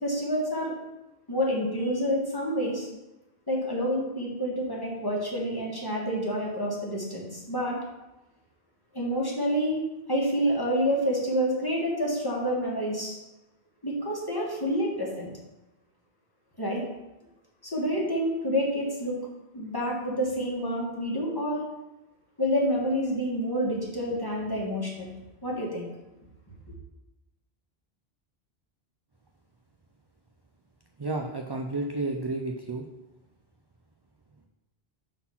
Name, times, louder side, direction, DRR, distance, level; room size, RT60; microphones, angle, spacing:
voice 1, 0.0-0.7 1.3-2.9 3.5-7.8 8.9-9.8 10.1-13.2 13.8-15.3 16.6-16.8 17.7-19.2 19.5-21.6 22.4-25.1 25.4-25.9, equal, 20° left, -4 dB, 1.6 m, -28 dB
voice 2, 31.0-32.9, right 2 dB, 35° right, 2 dB, 0.4 m, -31 dB
6.0 x 4.1 x 5.7 m, 1.0 s
omnidirectional pair, 1.0 m